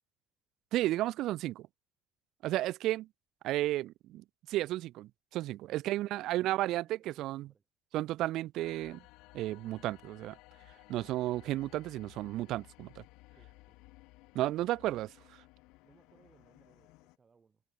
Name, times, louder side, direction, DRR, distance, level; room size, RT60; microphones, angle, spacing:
voice 1, 0.7-1.7 2.4-3.1 3.4-7.5 7.9-9.0 9.3-10.4 10.9-13.0 14.3-15.1, right 15 dB, 65° right, 0.6 m, -33 dB
voice 2, 5.9-7.7 13.4-13.8 15.8-17.6, right 5 dB, 25° right, 7.6 m, -67 dB
sound 1, 8.6-17.2, left 23 dB, 85° left, 4.3 m, -58 dB
cardioid pair, 140°, 0 cm